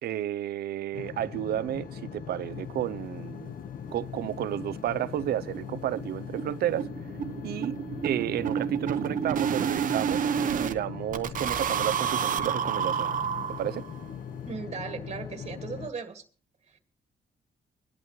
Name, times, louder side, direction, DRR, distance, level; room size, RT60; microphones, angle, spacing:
voice 1, 0.0-3.5 3.9-6.9 7.4-7.7 8.0-13.2 13.6-13.9, right 12 dB, 90° right, 0.5 m, -32 dB
sound 1, 0.9-15.9, left 7 dB, 65° left, 1.1 m, -40 dB
sound 2, 3.9-4.0 4.3-4.4 4.7-4.8 5.1-5.3 5.5-10.7 11.1-13.9, right 8 dB, 60° right, 0.8 m, -30 dB
voice 2, 14.5-16.2 16.7-16.8, right 5 dB, 40° right, 1.7 m, -37 dB
23.0 x 11.0 x 3.1 m
cardioid pair, 125°, 16 cm